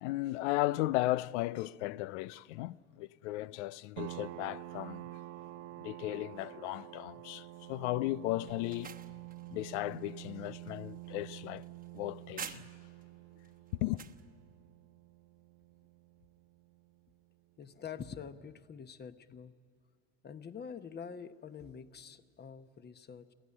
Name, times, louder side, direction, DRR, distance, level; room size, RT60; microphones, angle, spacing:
voice 1, 0.0-5.0 5.8-9.0 9.5-11.6 11.9-12.6 13.8-14.0, left 17 dB, 75° left, 0.6 m, -35 dB
sound 1, 4.0-17.2, right 17 dB, 55° right, 0.7 m, -48 dB
sound 2, 8.5-13.0 13.4-14.2, right 7 dB, 25° right, 1.1 m, -49 dB
voice 2, 17.6-19.5 20.2-23.3, left 7 dB, 30° left, 1.1 m, -46 dB
24.5 x 16.0 x 9.8 m
hypercardioid pair, 90°, 35 cm